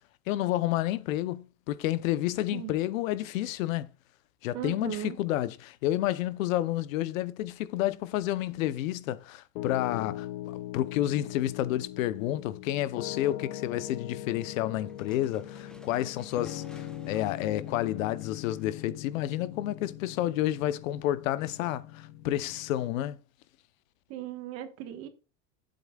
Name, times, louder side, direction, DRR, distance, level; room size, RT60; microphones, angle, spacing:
voice 1, 0.3-3.9 4.4-10.3 10.7-23.2, left 14 dB, 75° left, 0.9 m, -30 dB
voice 2, 4.5-5.2 24.1-25.1, right 12 dB, 40° right, 1.4 m, -37 dB
Piano, 9.5-22.9, left 13 dB, 45° left, 0.7 m, -41 dB
sound 1, 14.9-19.0, left 1 dB, ahead, 0.5 m, -56 dB
12.0 x 7.9 x 2.4 m
supercardioid pair, 170°, 40 cm